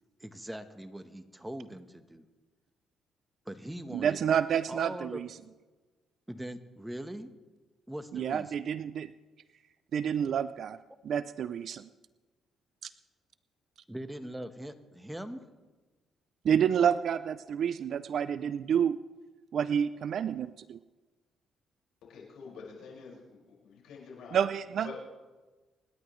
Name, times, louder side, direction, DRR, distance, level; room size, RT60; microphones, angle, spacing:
voice 1, 0.2-2.2 3.4-4.2 4.7-5.2 6.3-7.3 7.9-8.5 13.9-15.4, right 1 dB, 5° right, 9 dB, 1.1 m, -41 dB
voice 2, 3.9-5.3 8.1-9.1 9.9-10.8 11.0-11.9 12.8-12.9 16.4-19.0 19.5-20.8 24.3-25.0, right 8 dB, 65° right, 15 dB, 0.4 m, -29 dB
voice 3, 22.0-24.4 24.8-25.0, left 5 dB, 80° left, -3 dB, 5.4 m, -47 dB
26.5 x 10.5 x 3.2 m, 1.2 s
cardioid pair, 90°, 0 cm